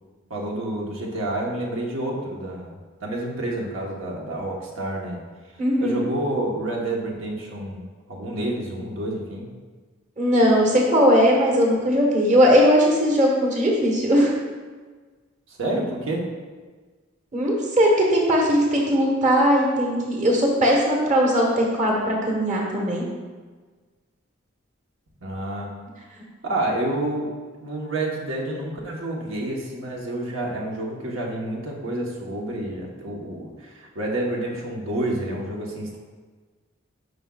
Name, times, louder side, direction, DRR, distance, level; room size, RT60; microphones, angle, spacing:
voice 1, 0.3-5.2 5.5-9.5 15.5-16.3 25.2-25.7 26.4-27.3 27.6-36.0, right 1 dB, 80° right, -2 dB, 1.2 m, -29 dB
voice 2, 5.6-6.0 10.2-14.3 17.3-23.0, equal, 40° right, -1 dB, 1.3 m, -19 dB
9.8 x 5.3 x 2.4 m, 1.4 s
head